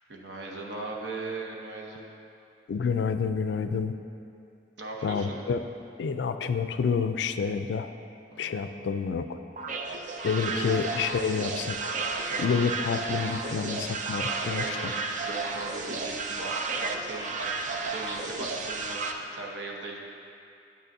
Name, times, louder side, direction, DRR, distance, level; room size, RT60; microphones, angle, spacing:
voice 1, 0.1-2.0 4.8-5.4 8.3-8.7 9.7-10.1 10.4-10.7 12.2-12.6 14.1-19.0 19.3-20.0, right 2 dB, 70° right, -1 dB, 1.0 m, -39 dB
voice 2, 2.7-3.9 5.0-5.6 6.0-7.9 8.4-9.2 10.2-12.0 12.4-14.8, left 6 dB, 70° left, 10 dB, 0.3 m, -28 dB
sound 1, 9.6-19.1, right 3 dB, 45° right, 0.5 m, -32 dB
8.9 x 8.5 x 2.7 m, 2.6 s
head